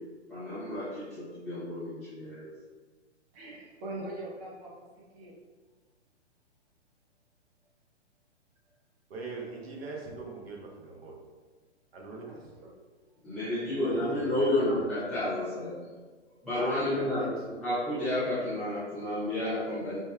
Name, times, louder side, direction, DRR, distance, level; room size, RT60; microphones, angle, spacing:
voice 1, 0.3-2.5 13.2-15.8 16.4-17.3 17.6-20.0, left 1 dB, ahead, -17 dB, 0.3 m, -31 dB
voice 2, 3.3-4.7 5.1-5.4 12.2-12.7, right 2 dB, 30° right, -4 dB, 0.9 m, -42 dB
voice 3, 9.1-11.4 11.9-12.6 13.8-14.9 16.6-17.5, right 3 dB, 55° right, -1 dB, 0.9 m, -42 dB
5.4 x 2.1 x 2.2 m, 1.4 s
figure-of-eight pair, 120°, 35 cm